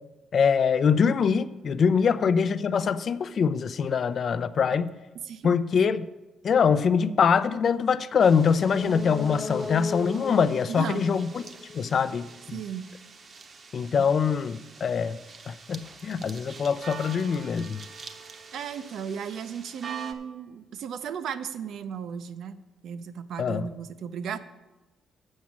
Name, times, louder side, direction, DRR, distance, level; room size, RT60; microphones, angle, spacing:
voice 1, 0.3-5.0 5.4-6.1 6.4-11.4 11.7-12.6 13.7-15.2 15.5-17.8 23.4-23.7, left 6 dB, 55° left, 14 dB, 0.4 m, -24 dB
sound 1, 8.2-20.1, right 5 dB, 45° right, 0.8 m, -46 dB
sound 2, 8.6-12.3 12.6-12.7, left 3 dB, 25° left, 1.2 m, -36 dB
voice 2, 10.7-11.1 12.5-12.9 14.0-14.1 18.5-22.6 22.8-24.4, right 7 dB, 75° right, 11 dB, 0.6 m, -35 dB
7.3 x 6.1 x 7.4 m, 1.1 s
cardioid pair, 90°, 0 cm